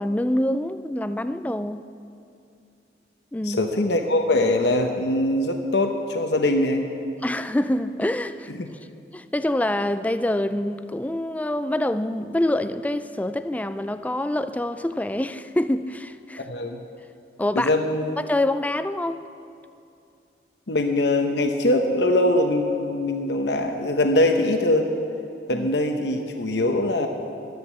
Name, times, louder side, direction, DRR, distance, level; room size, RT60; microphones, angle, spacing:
voice 1, 0.0-1.9 3.3-3.7 7.2-8.5 9.1-16.5 17.4-17.7 18.2-19.2 25.5-25.7, left 1 dB, 10° left, 12 dB, 0.3 m, -26 dB
voice 2, 3.5-6.8 8.6-8.7 16.4-16.8 17.5-18.2 20.7-24.9 25.5-27.1, left 1 dB, 70° left, 4 dB, 0.9 m, -22 dB
13.5 x 10.5 x 7.4 m, 2.6 s
head